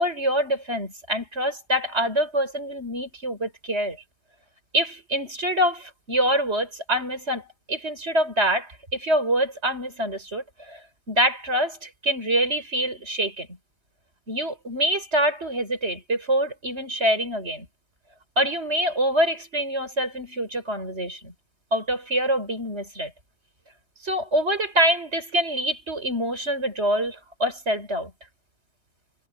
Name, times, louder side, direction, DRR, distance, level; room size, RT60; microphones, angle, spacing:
voice 1, 0.0-4.0 4.7-10.8 11.1-13.5 14.3-17.7 18.4-21.3 21.7-23.1 24.0-28.1, equal, 65° right, 7.0 m, -25 dB
omnidirectional pair, 1.2 m